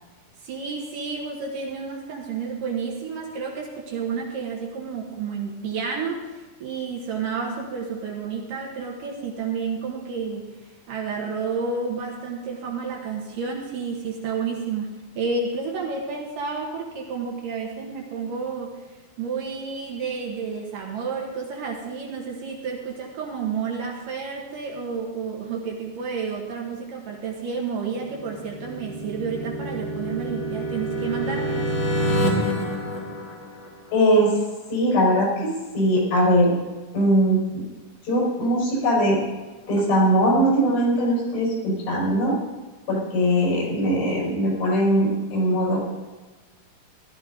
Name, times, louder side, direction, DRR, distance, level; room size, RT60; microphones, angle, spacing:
voice 1, 0.4-10.5 10.9-31.8, right 5 dB, 65° right, -1 dB, 2.5 m, -30 dB
sound 1, 28.2-34.0, equal, 55° left, 1.3 m, -27 dB
voice 2, 33.9-34.3 34.7-36.5 36.9-37.6 38.0-39.2 39.7-42.4 42.9-45.8, equal, 75° left, -4 dB, 6.6 m, -20 dB
15.5 x 12.5 x 3.7 m, 1.2 s
omnidirectional pair, 4.9 m